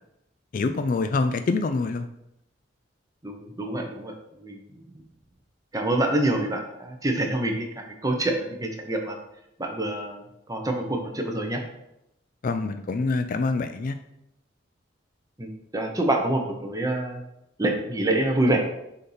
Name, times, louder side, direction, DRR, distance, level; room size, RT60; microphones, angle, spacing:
voice 1, 0.5-2.1 12.4-14.0, left 3 dB, 45° left, 9 dB, 0.3 m, -25 dB
voice 2, 3.2-4.1 4.4-4.5 5.7-9.2 9.6-10.2 10.5-11.6 15.4-17.2 17.6-18.6, right 1 dB, 20° right, 2 dB, 0.8 m, -26 dB
6.6 x 2.8 x 5.6 m, 0.84 s
head